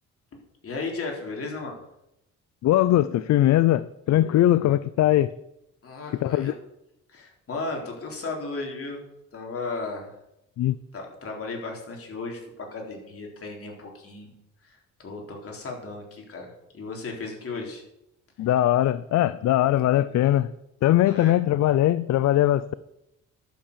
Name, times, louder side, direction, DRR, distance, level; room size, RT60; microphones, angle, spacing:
voice 1, 0.3-1.8 5.8-6.5 7.1-9.0 9.3-10.1 10.9-14.3 14.6-17.8 21.1-21.3, left 3 dB, 50° left, 0 dB, 3.7 m, -35 dB
voice 2, 2.6-5.3 6.2-6.5 10.6-10.8 18.4-20.5 20.8-22.7, left 13 dB, 65° left, 17 dB, 0.5 m, -21 dB
11.5 x 7.5 x 6.8 m, 0.85 s
cardioid pair, 90°, 30 cm